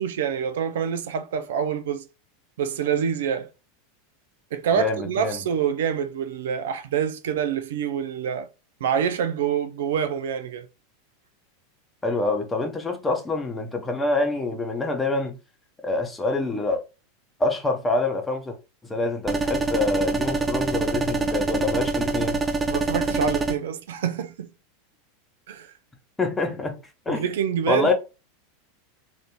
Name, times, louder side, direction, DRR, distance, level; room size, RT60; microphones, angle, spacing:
voice 1, 0.0-2.0 2.6-3.5 4.5-8.5 8.8-10.7 22.7-24.5 25.5-25.7 27.1-27.9, right 8 dB, 75° right, 0.4 m, -26 dB
voice 2, 4.7-5.4 12.0-15.3 15.8-16.8 17.4-18.6 18.9-22.4 26.2-26.8 27.1-27.2 27.7-27.9, left 3 dB, 15° left, 0.8 m, -26 dB
sound 1, 19.3-23.5, right 3 dB, 20° right, 0.5 m, -25 dB
2.9 x 2.6 x 2.2 m
hypercardioid pair, 105°, 0 cm